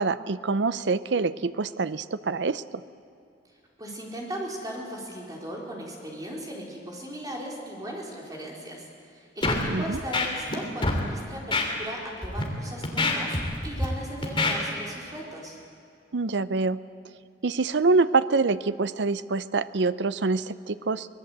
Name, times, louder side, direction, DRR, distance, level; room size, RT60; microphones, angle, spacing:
voice 1, 0.0-2.8 9.7-10.0 16.1-16.8 17.4-21.1, right 3 dB, 70° right, 15 dB, 0.6 m, -25 dB
voice 2, 3.8-15.6, right 1 dB, 20° right, -2 dB, 4.2 m, -37 dB
Scratching (performance technique), 9.4-9.6 9.9-10.6 10.8-11.0 11.5-11.7 12.2-12.4 12.8-13.9 14.2-14.5, left 3 dB, 30° left, 2.9 m, -25 dB
24.5 x 18.5 x 8.0 m, 2.6 s
head